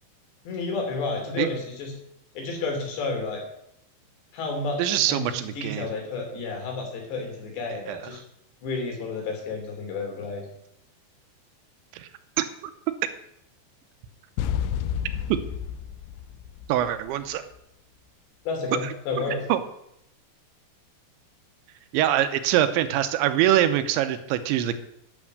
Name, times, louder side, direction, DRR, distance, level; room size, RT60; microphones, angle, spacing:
voice 1, 0.4-1.9 2.3-3.4 4.3-4.8 5.1-8.2 8.6-10.4 18.5-19.4, left 3 dB, 65° left, 2 dB, 4.9 m, -31 dB
voice 2, 4.8-5.9 7.9-8.0 11.9-12.1 12.4-12.5 15.3-15.4 16.7-17.4 19.5-19.6 21.9-24.8, right 12 dB, 80° right, 10 dB, 2.9 m, -23 dB
sound 1, 14.4-17.3, left 9 dB, 80° left, 2.5 m, -30 dB
10.5 x 9.6 x 6.5 m, 0.76 s
omnidirectional pair, 5.6 m